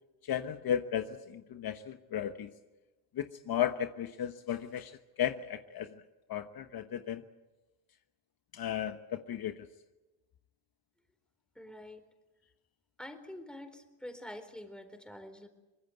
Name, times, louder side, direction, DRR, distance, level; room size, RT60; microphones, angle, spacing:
voice 1, 0.2-2.5 3.1-6.0 6.3-7.2 8.5-9.7, left 10 dB, 55° left, 8 dB, 1.2 m, -35 dB
voice 2, 11.5-12.1 13.0-15.5, left 1 dB, ahead, 7 dB, 4.2 m, -46 dB
24.5 x 20.0 x 8.0 m, 1.1 s
supercardioid pair, 75°, 43 cm